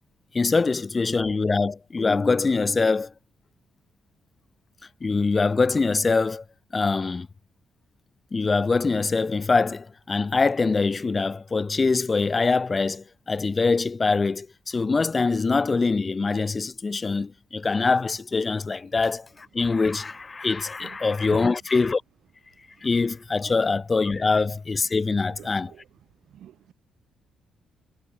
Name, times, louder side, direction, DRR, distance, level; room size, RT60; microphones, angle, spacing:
voice 1, 0.3-3.1 5.0-6.4 6.7-7.3 8.3-22.0 22.8-25.7, left 4 dB, 30° left, 0.3 m, -23 dB
voice 2, 25.4-25.8 26.3-26.7, right 11 dB, 70° right, 1.4 m, -44 dB
cardioid pair, 90°, 0 cm